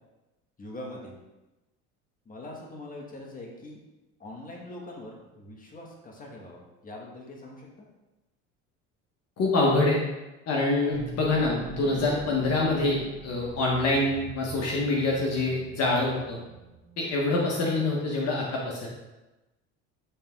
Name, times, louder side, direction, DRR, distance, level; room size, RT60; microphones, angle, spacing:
voice 1, 0.6-1.2 2.2-3.8 4.2-7.8, left 1 dB, 25° left, -1 dB, 1.6 m, -43 dB
voice 2, 9.4-10.0 10.5-16.4 17.0-18.9, left 2 dB, 50° left, -3 dB, 1.3 m, -25 dB
sound 1, 10.9-17.9, right 5 dB, 40° right, 1.0 m, -44 dB
8.4 x 3.6 x 3.6 m, 1.0 s
supercardioid pair, 105°, 33 cm